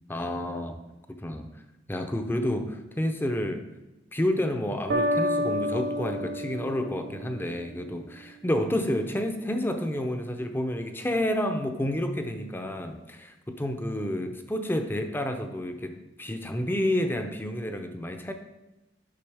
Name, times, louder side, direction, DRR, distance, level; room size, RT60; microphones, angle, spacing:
voice 1, 0.1-0.8 1.2-1.5 1.9-3.6 4.1-15.9 16.2-18.3, left 1 dB, 10° left, 6 dB, 0.6 m, -29 dB
sound 1, 4.9-7.7, equal, 75° right, 1.2 m, -29 dB
10.0 x 6.0 x 3.5 m, 1.0 s
head